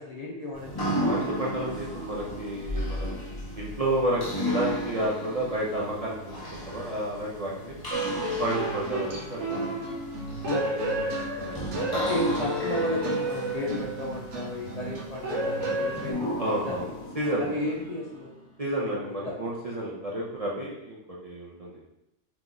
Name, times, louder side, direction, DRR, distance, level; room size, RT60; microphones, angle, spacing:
voice 1, 0.0-1.4 10.4-11.0 11.7-17.0 17.4-18.3 18.8-19.3, left 2 dB, 45° left, -4 dB, 0.6 m, -34 dB
sound 1, 0.5-18.4, equal, 20° left, 0.9 m, -35 dB
voice 2, 1.0-3.2 3.6-7.8 8.4-9.8 11.0-12.0 16.4-17.5 18.6-21.8, right 1 dB, 40° right, -4 dB, 0.6 m, -31 dB
sound 2, 7.9-16.1, right 2 dB, 75° right, 1.1 m, -31 dB
3.5 x 3.0 x 3.9 m, 0.87 s
omnidirectional pair, 1.2 m